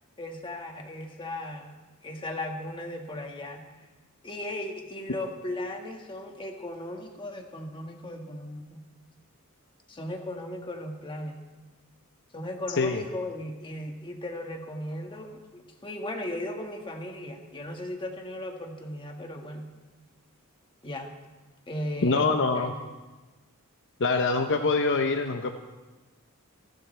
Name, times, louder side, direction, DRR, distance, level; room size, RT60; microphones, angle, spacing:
voice 1, 0.2-3.6 4.2-8.8 9.9-11.4 12.3-19.7 20.8-21.2 21.7-22.9, left 1 dB, 25° left, 2 dB, 1.7 m, -37 dB
voice 2, 22.0-22.7 24.0-25.5, left 3 dB, 55° left, 6 dB, 0.8 m, -24 dB
28.5 x 12.0 x 3.4 m, 1.2 s
head